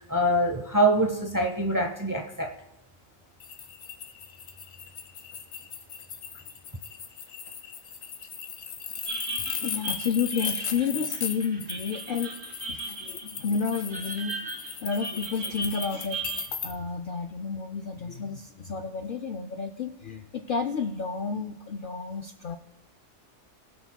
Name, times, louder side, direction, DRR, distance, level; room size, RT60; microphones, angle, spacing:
voice 1, 0.1-2.6, right 1 dB, 20° right, 3 dB, 0.6 m, -24 dB
sound 1, 3.4-16.7, left 7 dB, 85° left, 1.3 m, -37 dB
sound 2, 9.1-16.5, right 2 dB, 75° right, 2.2 m, -37 dB
voice 2, 9.4-12.3 12.6-14.4 14.8-22.6, left 5 dB, 60° left, 7 dB, 0.6 m, -31 dB
21.0 x 7.1 x 2.2 m, 0.96 s
omnidirectional pair, 1.3 m